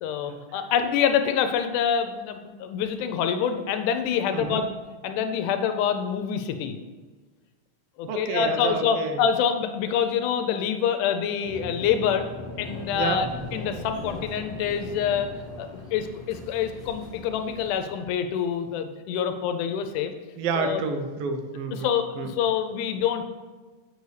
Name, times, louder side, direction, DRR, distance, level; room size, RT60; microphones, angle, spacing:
voice 1, 0.0-4.7 5.0-6.8 8.0-12.2 12.6-15.3 15.6-20.1 20.6-20.8 21.8-23.3, left 8 dB, 85° left, 7 dB, 2.0 m, -26 dB
voice 2, 4.3-4.6 8.1-9.2 12.9-13.2 20.4-22.3, right 4 dB, 85° right, 6 dB, 1.4 m, -29 dB
sound 1, 11.4-17.7, left 1 dB, ahead, 0.9 m, -39 dB
6.8 x 6.6 x 3.2 m, 1.3 s
omnidirectional pair, 3.6 m